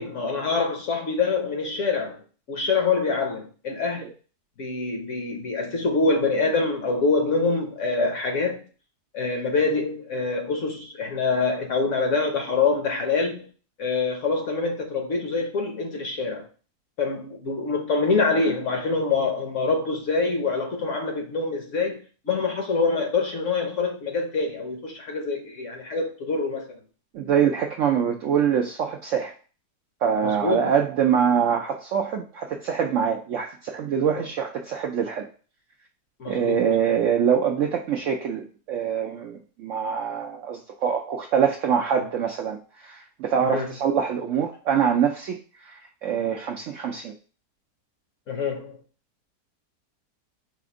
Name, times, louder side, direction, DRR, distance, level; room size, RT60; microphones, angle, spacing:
voice 1, 0.0-2.2 2.5-4.1 4.6-8.6 9.1-13.5 13.8-16.5 17.0-26.6 30.2-30.7 36.2-36.7 43.4-43.7 48.3-48.8, left 4 dB, 55° left, 1.0 m, -25 dB
voice 2, 27.1-29.3 30.0-35.3 36.3-45.4 45.7-47.1, right 8 dB, 75° right, 0.7 m, -24 dB
4.2 x 2.5 x 4.8 m
omnidirectional pair, 1.8 m